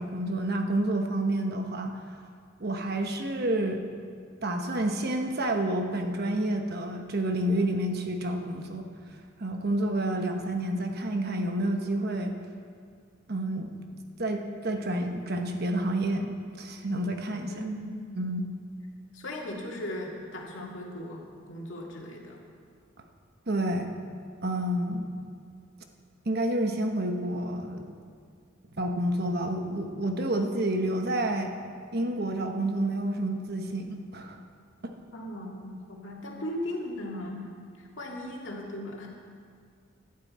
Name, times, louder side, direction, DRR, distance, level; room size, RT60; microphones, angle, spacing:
voice 1, 0.0-1.9 2.6-3.8 4.4-8.9 9.4-12.3 13.3-13.7 14.2-17.5 18.1-18.5 23.5-23.9 24.4-25.1 26.3-27.9 28.7-31.5 31.9-34.4 34.8-34.9, right 1 dB, 55° right, 4 dB, 1.1 m, -29 dB
voice 2, 17.5-18.0 19.1-22.4 35.1-37.5 37.8-39.1, left 1 dB, 70° left, -1 dB, 2.3 m, -37 dB
17.0 x 11.5 x 4.3 m, 2.2 s
head